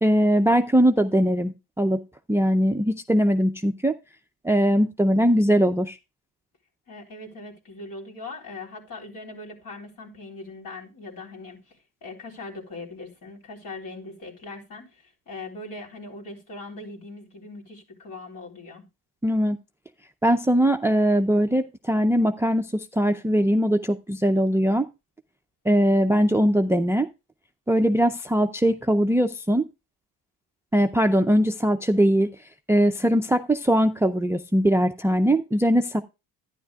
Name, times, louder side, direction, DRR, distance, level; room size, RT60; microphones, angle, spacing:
voice 1, 0.0-2.0 2.3-3.9 4.4-6.0 19.2-19.6 20.2-24.9 25.7-27.1 27.7-29.7 30.7-32.3 32.7-36.0, equal, 5° right, 0.4 m, -21 dB
voice 2, 6.9-18.9, left 2 dB, 55° left, 3.8 m, -40 dB
11.5 x 10.0 x 2.3 m
cardioid pair, 105°, 41 cm